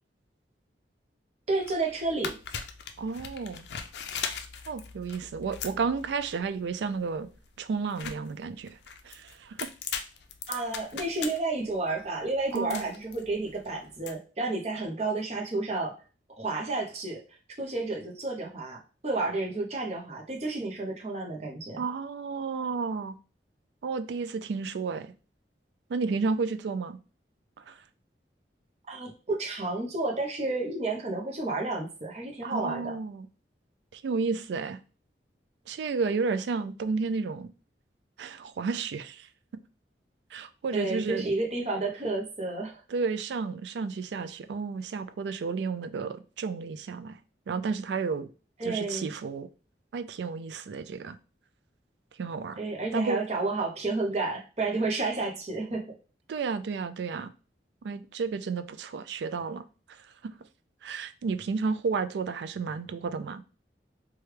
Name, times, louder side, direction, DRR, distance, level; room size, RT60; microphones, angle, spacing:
sound 1, 1.5-14.1, left 7 dB, 70° left, 0.4 m, -40 dB
voice 1, 1.5-2.4 10.5-16.0 16.4-17.2 17.6-21.8 28.9-33.0 40.7-42.8 48.6-49.1 52.6-55.9, right 2 dB, 35° right, 0.7 m, -31 dB
voice 2, 3.0-3.7 4.7-7.3 7.6-8.7 9.0-9.7 12.5-12.8 21.8-23.2 23.8-25.1 25.9-27.0 27.6-27.8 32.4-33.3 33.9-34.8 35.7-37.5 38.2-39.3 40.3-41.3 42.9-47.2 47.5-48.3 48.6-49.5 49.9-51.2 52.2-52.6 52.9-53.2 56.3-57.3 57.8-59.6 60.2-60.3 60.8-63.4, right 4 dB, 75° right, 0.3 m, -32 dB
3.1 x 2.3 x 3.2 m
head